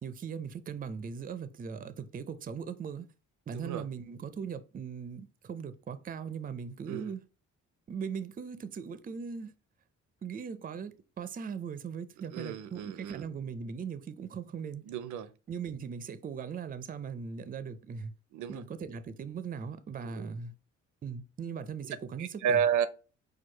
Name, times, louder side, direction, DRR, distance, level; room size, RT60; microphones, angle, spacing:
voice 1, 0.0-3.1 3.5-7.2 7.9-9.5 10.2-14.9 15.5-18.1 18.5-20.5 21.0-22.6, right 6 dB, 30° right, 0.5 m, -39 dB
voice 2, 3.5-3.8 6.9-7.1 12.3-13.3 14.9-15.3 18.3-18.6 20.0-20.3 22.2-22.9, right 8 dB, 75° right, 0.5 m, -31 dB
4.6 x 2.3 x 4.4 m
cardioid pair, 90°, 30 cm